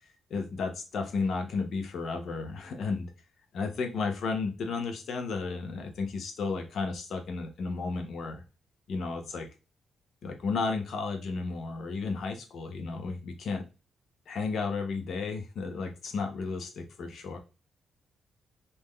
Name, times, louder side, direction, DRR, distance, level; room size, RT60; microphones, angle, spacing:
voice 1, 0.3-3.1 3.5-8.4 8.9-9.5 10.2-13.6 14.3-17.4, left 4 dB, 65° left, 5 dB, 0.8 m, -33 dB
3.7 x 2.7 x 3.1 m, 0.31 s
cardioid pair, 90°, 0 cm